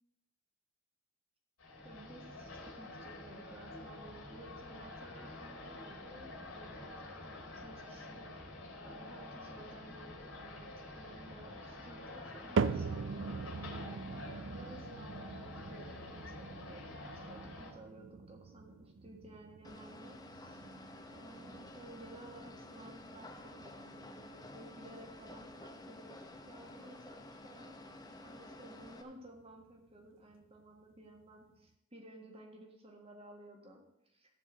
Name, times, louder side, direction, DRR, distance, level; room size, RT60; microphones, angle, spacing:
sound 1, 1.6-17.7, left 2 dB, 85° left, 2.5 m, -48 dB
voice 1, 1.8-8.3 8.8-13.7 14.1-16.9 17.1-20.8 21.1-27.8 28.2-34.4, right 1 dB, 25° right, 1 dB, 1.7 m, -55 dB
sound 2, 12.6-28.9 29.2-29.7 30.3-30.4 31.2-31.3, right 4 dB, 60° right, 0.4 m, -42 dB
sound 3, 19.6-29.0, left 1 dB, 20° left, 0.9 m, -51 dB
14.0 x 4.7 x 7.4 m, 0.85 s
head